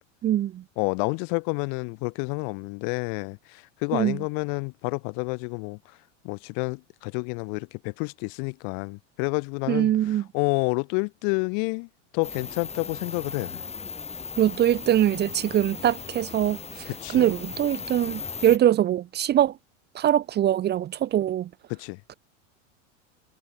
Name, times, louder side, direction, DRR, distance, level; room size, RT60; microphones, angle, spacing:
voice 1, 0.2-0.6 3.9-4.2 9.7-10.3 14.4-19.6 19.9-21.5, right 11 dB, 25° right, 0.7 m, -23 dB
voice 2, 0.8-5.8 6.2-9.9 10.3-11.9 12.1-13.6 16.9-17.3 21.7-22.0, left 40 dB or more, 60° left, 1.0 m, -29 dB
sound 1, 12.2-18.6, left 5 dB, 15° left, 4.8 m, -37 dB
supercardioid pair, 125°, 37 cm